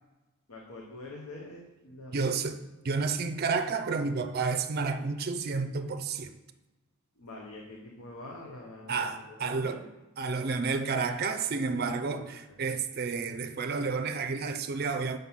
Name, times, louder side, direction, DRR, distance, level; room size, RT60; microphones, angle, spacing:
voice 1, 0.5-2.3 7.2-9.8 12.5-12.6, left 2 dB, 75° left, -1 dB, 0.9 m, -45 dB
voice 2, 2.1-2.6 2.8-6.4 8.9-9.9 10.2-15.2, right 4 dB, 45° right, 8 dB, 0.4 m, -30 dB
5.9 x 5.4 x 5.6 m, 1.1 s
head